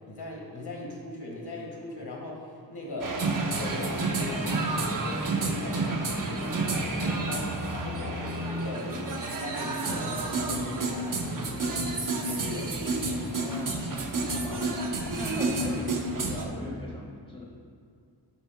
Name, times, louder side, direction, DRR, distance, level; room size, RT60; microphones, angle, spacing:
voice 1, 0.1-2.4 2.7-9.0 9.3-13.4, left 1 dB, 65° left, -2 dB, 1.8 m, -39 dB
sound 1, 3.0-16.4, right 2 dB, 50° right, 0.9 m, -30 dB
voice 2, 13.1-17.4, left 2 dB, 10° left, -3 dB, 1.6 m, -41 dB
11.5 x 7.4 x 2.3 m, 2.3 s
wide cardioid pair, 100°, 43 cm